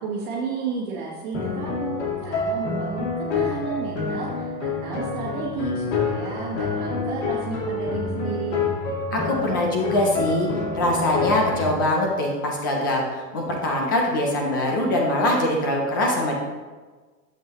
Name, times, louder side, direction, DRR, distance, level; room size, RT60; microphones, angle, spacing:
voice 1, 0.0-8.6, right 4 dB, 35° right, -5 dB, 1.4 m, -32 dB
sound 1, 1.3-11.8, left 4 dB, 80° left, 2.4 m, -27 dB
voice 2, 9.1-10.5 10.7-13.0 13.3-16.3, left 1 dB, 15° left, 0 dB, 0.3 m, -23 dB
11.0 x 7.5 x 3.0 m, 1.4 s
supercardioid pair, 155°, 50 cm